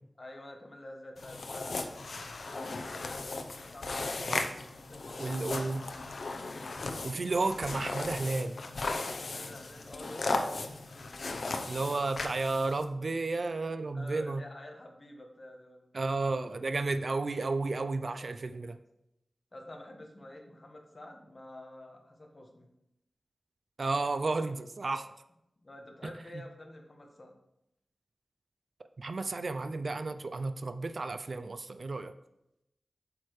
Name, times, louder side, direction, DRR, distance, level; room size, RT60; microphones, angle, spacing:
voice 1, 0.2-1.9 2.3-4.1 4.9-5.5 7.1-7.3 9.0-11.5 13.0-13.1 13.9-16.1 18.2-18.6 19.5-22.7 24.9-25.1 25.6-27.3, left 1 dB, 40° left, 2 dB, 1.4 m, -49 dB
sound 1, 1.2-12.8, left 3 dB, 75° left, 0.7 m, -37 dB
voice 2, 5.2-5.8 7.0-8.6 11.7-14.4 15.9-18.8 23.8-25.1 29.0-32.1, right 3 dB, 60° right, 10 dB, 0.4 m, -32 dB
8.5 x 6.5 x 3.2 m, 0.85 s
wide cardioid pair, 90°, 0 cm